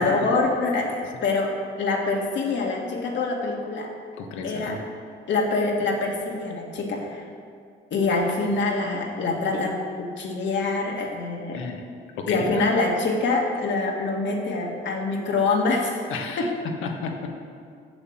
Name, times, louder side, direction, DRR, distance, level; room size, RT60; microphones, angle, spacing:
voice 1, 0.0-3.9 4.4-4.8 5.3-7.2 7.9-11.6 12.3-16.0 16.4-16.5, left 3 dB, 65° left, 1 dB, 1.8 m, -25 dB
voice 2, 4.2-4.8 11.5-11.8 12.2-12.7 16.1-17.3, left 4 dB, 90° left, 3 dB, 1.3 m, -32 dB
8.0 x 7.4 x 7.4 m, 2.2 s
cardioid pair, 90°, 20 cm